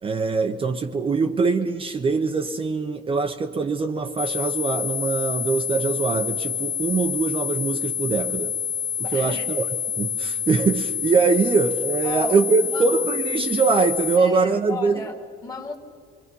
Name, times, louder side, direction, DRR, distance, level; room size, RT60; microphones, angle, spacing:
voice 1, 0.0-8.5 9.0-9.6 10.0-15.0, right 4 dB, 30° right, 5 dB, 1.0 m, -23 dB
sound 1, 4.2-14.2, left 7 dB, 65° left, 1.8 m, -28 dB
voice 2, 9.0-9.5 12.0-12.4 12.7-12.9 14.2-15.8, left 4 dB, 20° left, 4 dB, 2.3 m, -34 dB
26.0 x 23.0 x 5.5 m, 2.1 s
cardioid pair, 110°, 17 cm